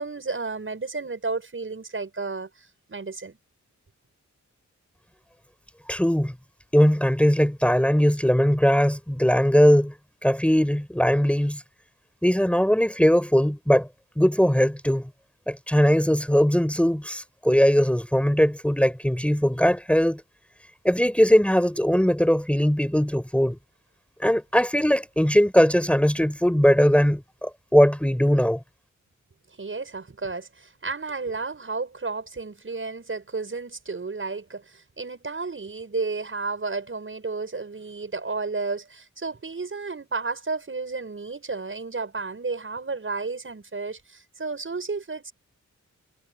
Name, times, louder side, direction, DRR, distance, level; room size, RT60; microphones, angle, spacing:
voice 1, 0.0-3.4 29.5-45.3, right 4 dB, 40° right, 7.5 m, -32 dB
voice 2, 5.9-6.3 6.7-9.9 10.2-11.6 12.2-13.9 14.2-15.1 15.5-20.2 20.8-23.6 24.2-28.6, equal, 5° left, 6.0 m, -20 dB
wide cardioid pair, 120°, 31 cm